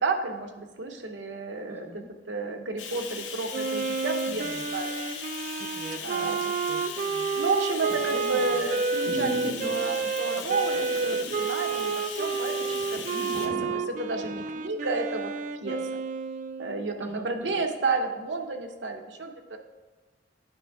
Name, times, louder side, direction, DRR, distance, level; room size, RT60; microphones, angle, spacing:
voice 1, 0.0-4.9 6.0-6.4 7.3-13.5 13.8-15.3 15.6-16.0 16.6-19.6, right 3 dB, 80° right, 4 dB, 0.8 m, -31 dB
voice 2, 1.7-2.1 4.3-4.6 5.8-7.3 8.0-8.6 10.4-10.6 13.1-13.5 17.0-17.6, equal, 10° right, 2 dB, 0.7 m, -44 dB
Bathtub (filling or washing), 2.8-13.5, left 6 dB, 80° left, 0.7 m, -38 dB
Wind instrument woodwind instrument, 3.5-16.9, right 5 dB, 45° right, 0.3 m, -30 dB
sound 1, 7.8-8.2 8.6-8.7 9.0-10.1 10.7-11.4 11.7-11.8 12.3-12.4 12.6-14.5 14.9-15.0, equal, 60° right, 1.5 m, -37 dB
9.1 x 3.5 x 4.6 m, 1.2 s
head